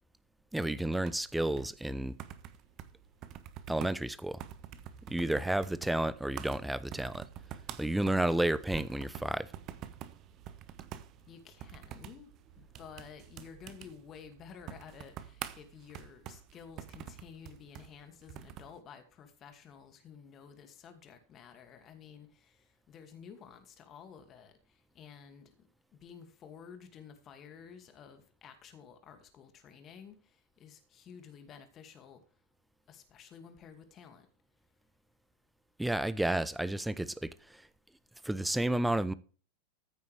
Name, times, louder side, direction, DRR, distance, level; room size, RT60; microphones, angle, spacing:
voice 1, 0.5-2.1 3.7-4.4 5.1-7.2 7.8-9.5 35.8-37.6 38.2-39.1, right 1 dB, 5° right, 0.7 m, -31 dB
sound 1, 0.9-18.8, right 10 dB, 35° right, 1.2 m, -48 dB
voice 2, 11.3-12.3 12.6-25.7 25.9-32.2 32.9-34.3, left 7 dB, 30° left, 2.3 m, -52 dB
14.5 x 9.3 x 3.4 m
figure-of-eight pair, 90°, 0 cm